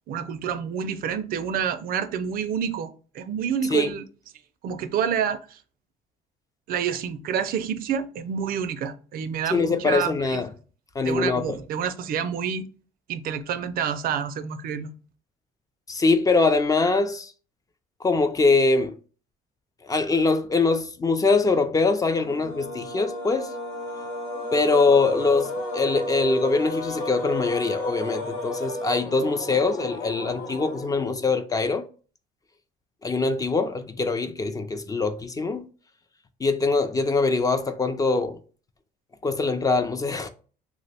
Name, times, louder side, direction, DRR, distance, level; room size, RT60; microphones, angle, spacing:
voice 1, 0.1-4.0 4.6-5.6 6.7-10.4 11.0-12.6 13.1-14.9, right 7 dB, 60° right, 0.4 m, -28 dB
voice 2, 9.5-10.5 11.0-11.6 15.9-17.3 18.0-19.0 19.8-23.5 24.5-31.8 33.0-35.7 36.4-38.4 39.2-40.3, left 3 dB, 20° left, 0.3 m, -23 dB
sound 1, 22.1-31.4, left 1 dB, 80° left, 0.7 m, -33 dB
2.9 x 2.0 x 4.0 m
cardioid pair, 110°, 17 cm